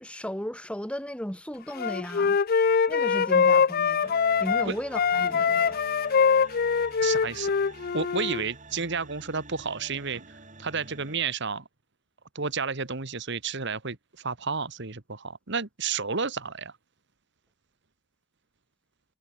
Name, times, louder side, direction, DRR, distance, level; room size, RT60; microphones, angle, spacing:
voice 1, 0.0-2.4 2.9-4.1 4.4-5.8, equal, 5° left, 3.4 m, -35 dB
Wind instrument woodwind instrument, 1.8-4.7 4.9-8.4, left 6 dB, 45° left, 0.5 m, -23 dB
sound 1, 4.0-11.2, right 3 dB, 35° right, 6.4 m, -47 dB
voice 2, 7.0-7.5 7.9-11.6 12.4-16.7, right 5 dB, 60° right, 1.8 m, -31 dB
head